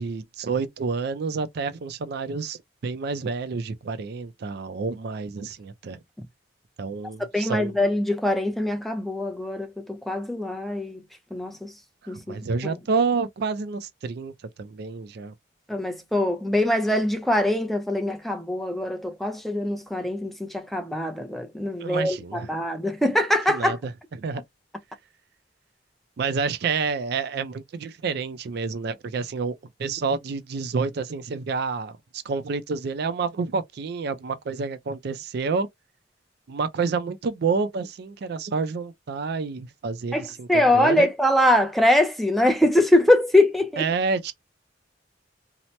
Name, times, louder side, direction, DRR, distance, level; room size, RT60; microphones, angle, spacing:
voice 1, 0.0-6.0 6.8-7.8 12.1-14.3 14.6-15.3 21.8-22.5 23.5-24.4 26.2-29.5 29.8-35.7 36.5-41.1 43.8-44.3, right 4 dB, 60° right, 0.4 m, -29 dB
voice 2, 7.2-11.0 11.3-11.7 12.1-12.4 12.6-12.7 15.7-23.8 40.1-43.9, left 1 dB, ahead, 0.4 m, -23 dB
2.8 x 2.0 x 3.1 m
head